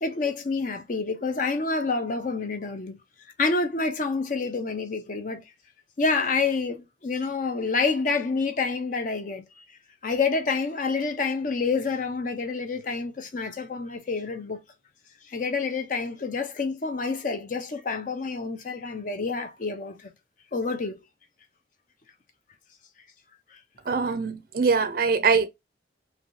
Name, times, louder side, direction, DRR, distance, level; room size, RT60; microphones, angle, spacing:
voice 1, 0.0-3.0 3.4-5.4 6.0-9.4 10.0-14.6 15.3-20.1 20.5-21.0, left 4 dB, 45° left, 0.5 m, -28 dB
voice 2, 23.9-25.5, right 5 dB, 50° right, 0.4 m, -23 dB
3.2 x 2.6 x 2.6 m
head